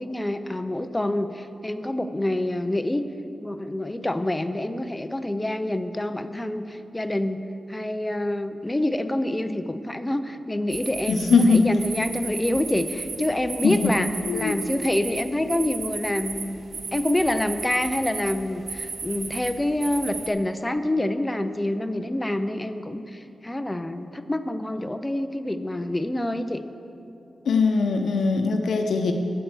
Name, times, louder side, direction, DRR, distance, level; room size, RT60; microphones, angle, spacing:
voice 1, 0.0-3.0 3.4-7.4 7.7-16.6 16.9-26.6, left 1 dB, 10° left, 10 dB, 0.5 m, -27 dB
sound 1, 10.7-20.3, right 4 dB, 65° right, 1.0 m, -35 dB
voice 2, 11.1-11.7 13.6-13.9 14.3-14.6 27.5-29.1, left 4 dB, 90° left, 5 dB, 0.7 m, -21 dB
10.0 x 7.7 x 7.9 m, 2.8 s
wide cardioid pair, 145°, 0 cm